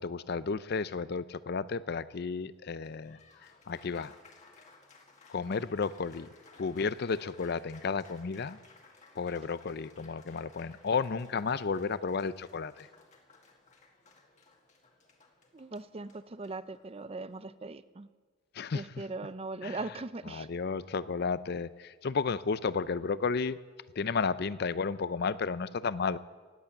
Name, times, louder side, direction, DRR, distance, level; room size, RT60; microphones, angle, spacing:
voice 1, 0.0-4.1 5.3-6.3 6.6-8.6 9.2-12.9 18.5-19.0 19.6-19.8 20.3-23.6 24.0-26.2, left 5 dB, 55° left, 16 dB, 0.5 m, -33 dB
Applause, 2.8-17.4, left 3 dB, 40° left, 2.0 m, -59 dB
voice 2, 15.5-18.1 18.7-20.5, right 3 dB, 30° right, 14 dB, 0.5 m, -40 dB
17.5 x 8.4 x 8.9 m, 1.4 s
head